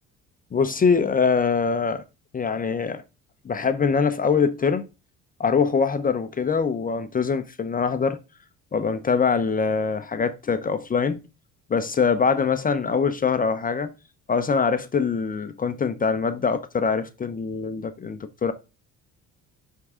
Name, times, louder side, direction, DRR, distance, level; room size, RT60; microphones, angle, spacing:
voice 1, 0.5-2.0 2.3-3.0 3.4-4.9 5.4-8.2 8.7-11.2 11.7-13.9 14.3-18.5, left 5 dB, 25° left, 0.7 m, -23 dB
10.5 x 3.7 x 3.7 m
supercardioid pair, 80°, 31 cm